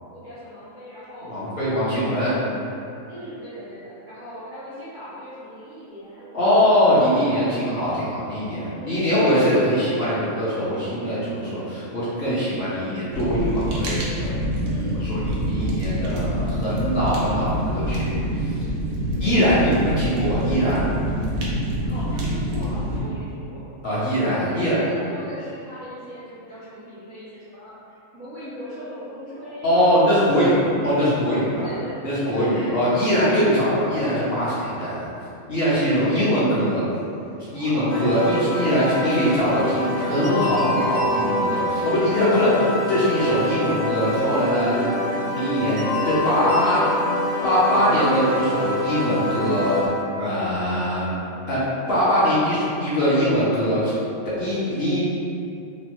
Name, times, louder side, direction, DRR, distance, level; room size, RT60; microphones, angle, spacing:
voice 1, 0.0-1.3 2.0-2.6 3.1-7.6 8.6-9.2 9.5-9.8 14.6-15.1 21.8-23.7 24.2-30.7 31.6-33.6 35.7-36.3 37.5-38.1 46.5-47.4 50.6-51.1, equal, 60° right, -11 dB, 0.5 m, -39 dB
voice 2, 1.3-2.3 6.3-14.3 15.0-18.4 19.2-20.9 23.8-24.8 29.6-31.7 32.0-35.1 35.5-36.8 37.5-44.8 45.3-46.8 47.4-49.8 50.2-51.1 51.5-53.9 54.4-55.0, equal, 55° left, -11 dB, 0.7 m, -22 dB
Fire, 13.1-23.0, equal, 90° right, 1.1 m, -26 dB
sound 1, 37.9-49.9, left 1 dB, 85° left, 1.3 m, -25 dB
3.0 x 2.0 x 2.9 m, 2.6 s
omnidirectional pair, 1.5 m